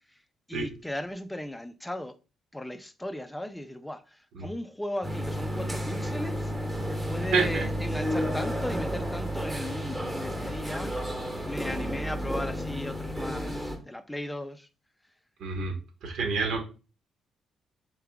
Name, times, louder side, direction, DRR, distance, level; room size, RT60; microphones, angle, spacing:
voice 1, 0.5-2.1 2.5-6.5 6.9-11.1 11.4-14.7, left 1 dB, 5° left, 0.5 m, -36 dB
sound 1, 5.0-13.8, equal, 10° right, 1.2 m, -32 dB
sound 2, 5.8-12.6, right 2 dB, 65° left, 0.4 m, -41 dB
voice 2, 7.3-7.6 15.4-15.7 16.0-16.6, right 4 dB, 75° right, 1.4 m, -27 dB
3.8 x 3.5 x 3.5 m
cardioid pair, 90°, 0 cm